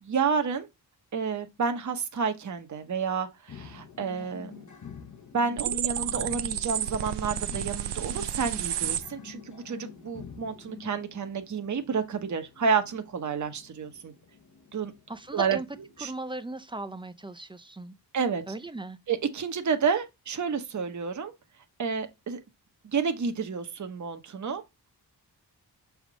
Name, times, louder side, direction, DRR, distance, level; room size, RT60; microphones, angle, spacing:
voice 1, 0.0-0.7 1.1-4.6 5.3-14.1 14.7-14.9 15.3-15.6 16.0-16.1 18.1-18.4 19.1-21.3 21.8-22.4 22.8-24.6, right 6 dB, 45° right, 0.9 m, -30 dB
sound 1, 3.5-16.1, left 7 dB, 45° left, 0.9 m, -47 dB
sound 2, 5.6-9.0, right 11 dB, 85° right, 0.6 m, -31 dB
voice 2, 15.1-15.7 16.0-17.9 18.5-19.0, right 2 dB, 10° right, 0.5 m, -37 dB
6.3 x 3.6 x 4.7 m
wide cardioid pair, 115°, 40 cm